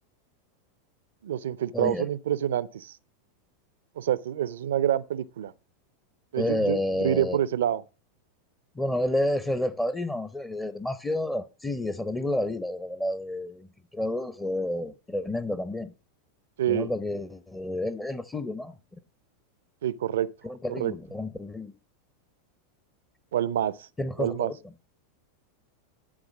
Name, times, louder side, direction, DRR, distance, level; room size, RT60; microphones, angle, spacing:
voice 1, 1.2-3.0 4.0-5.5 6.3-7.8 16.6-16.9 19.8-20.3 20.7-20.9 23.3-23.9 24.2-24.5, right 11 dB, 75° right, 0.5 m, -27 dB
voice 2, 1.7-2.1 6.4-7.4 8.8-13.7 13.9-15.9 16.7-18.8 20.4-21.7 24.0-24.5, left 1 dB, 10° left, 0.8 m, -30 dB
11.5 x 3.8 x 6.0 m
hypercardioid pair, 95°, 0 cm